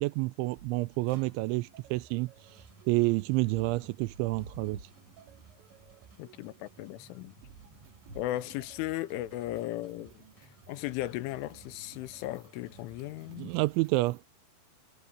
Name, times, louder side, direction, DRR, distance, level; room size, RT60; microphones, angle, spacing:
voice 1, 0.0-2.3 2.9-4.8 13.4-14.2, right 21 dB, 85° right, 2.7 m, -29 dB
sound 1, 0.5-14.3, right 7 dB, 65° right, 4.7 m, -57 dB
sound 2, 1.1-14.2, right 4 dB, 40° right, 4.7 m, -61 dB
sound 3, 4.1-6.0 6.6-6.9 7.3-7.4 8.1-8.3, right 2 dB, 25° right, 4.4 m, -49 dB
voice 2, 6.2-7.3 8.2-13.5, left 15 dB, 85° left, 3.1 m, -36 dB
omnidirectional pair, 5.9 m